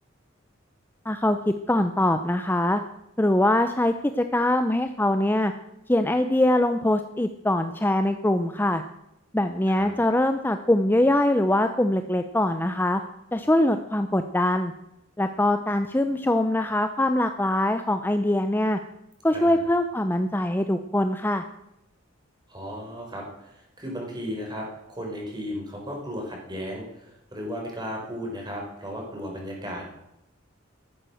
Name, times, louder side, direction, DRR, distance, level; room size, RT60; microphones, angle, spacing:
voice 1, 1.1-2.8 3.2-5.5 5.9-8.8 9.3-13.0 13.3-14.7 15.2-18.8 19.2-21.4, left 1 dB, 10° left, 8 dB, 0.6 m, -23 dB
voice 2, 19.3-19.6 22.5-29.8, equal, 20° right, 0 dB, 5.0 m, -35 dB
14.0 x 11.5 x 6.4 m, 0.85 s
head